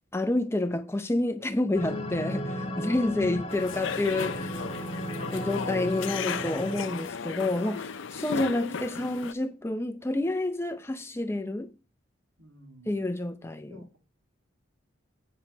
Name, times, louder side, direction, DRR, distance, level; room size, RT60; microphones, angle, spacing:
voice 1, 0.1-4.4 5.3-11.7 12.9-13.7, left 2 dB, 15° left, 0.6 m, -29 dB
sound 1, 1.7-7.2, left 1 dB, 30° left, 1.8 m, -35 dB
sound 2, 3.5-9.3, left 6 dB, 70° left, 0.5 m, -35 dB
voice 2, 3.5-4.1 12.4-13.0 13.7-14.0, equal, 75° right, 3.0 m, -52 dB
9.4 x 5.8 x 5.5 m
head